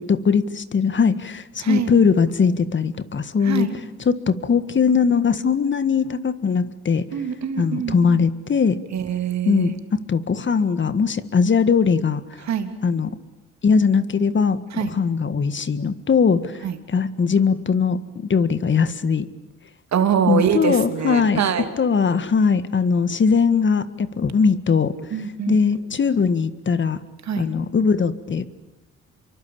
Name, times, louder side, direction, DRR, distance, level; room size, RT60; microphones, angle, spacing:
voice 1, 0.0-7.0 7.6-8.8 9.5-9.8 10.1-12.2 12.8-13.2 13.6-18.0 18.3-19.3 20.3-27.0 27.4-28.4, left 5 dB, 40° left, 14 dB, 1.8 m, -20 dB
voice 2, 1.6-1.9 3.4-3.7 7.1-8.2 8.9-9.7 12.5-12.7 14.8-14.9 16.6-16.8 19.9-21.7 25.1-25.6 27.3-27.5, right 8 dB, 65° right, 7 dB, 3.3 m, -24 dB
27.5 x 24.0 x 8.8 m, 0.93 s
cardioid pair, 90°, 30 cm